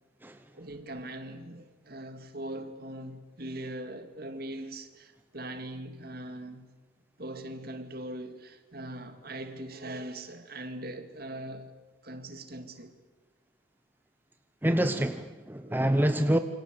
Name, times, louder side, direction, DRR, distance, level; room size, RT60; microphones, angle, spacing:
voice 1, 0.5-6.7 7.2-11.7 12.0-12.9 15.6-15.8, right 1 dB, 50° right, 2.5 m, -41 dB
voice 2, 14.6-16.4, right 1 dB, 10° right, 0.9 m, -26 dB
27.5 x 25.0 x 7.8 m
head